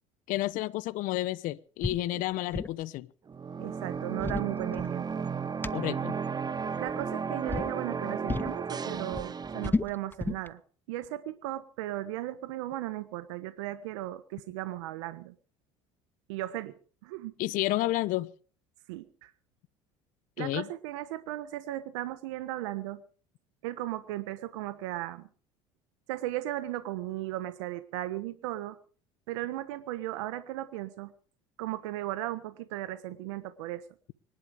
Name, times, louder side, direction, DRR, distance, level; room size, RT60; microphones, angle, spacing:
voice 1, 0.3-3.1 5.7-6.2 17.4-18.3 20.4-20.7, left 17 dB, 60° left, 0.9 m, -30 dB
sound 1, 1.8-2.0 2.3-2.8 4.0-5.2 5.6-5.7 6.8-7.1 7.5-7.7 8.3-8.6 8.9-10.5, left 3 dB, 15° left, 0.7 m, -33 dB
sound 2, 3.3-9.7, right 6 dB, 25° right, 1.0 m, -34 dB
voice 2, 3.6-5.3 6.8-10.6 10.9-15.3 16.3-16.7 17.0-17.3 18.9-19.3 20.4-23.0 23.6-25.3 26.1-28.8 29.3-31.1 31.6-33.8, right 15 dB, 80° right, 1.3 m, -36 dB
25.0 x 11.5 x 5.0 m
hypercardioid pair, 75°, 15 cm